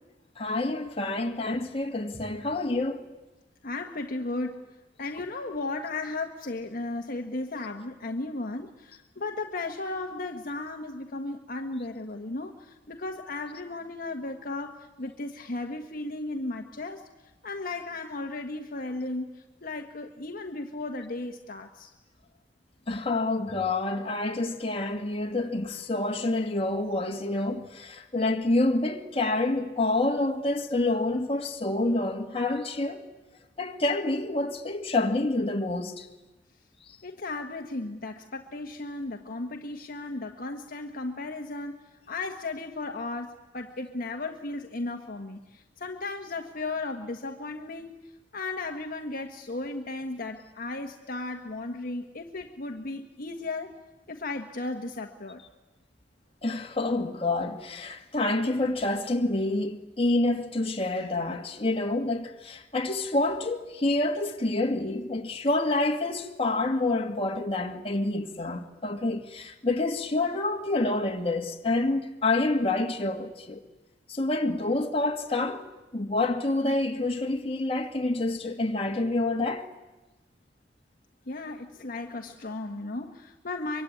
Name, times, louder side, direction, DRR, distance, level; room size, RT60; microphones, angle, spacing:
voice 1, 0.4-3.0 22.9-33.0 33.6-36.1 56.4-73.6 74.1-75.6 75.9-79.7, left 2 dB, 30° left, 2.0 m, -28 dB
voice 2, 3.6-4.6 5.0-17.0 17.4-19.3 19.6-21.9 37.0-47.9 48.3-53.7 54.1-55.4 81.3-83.8, left 2 dB, 50° left, 1.4 m, -35 dB
24.0 x 24.0 x 9.8 m
head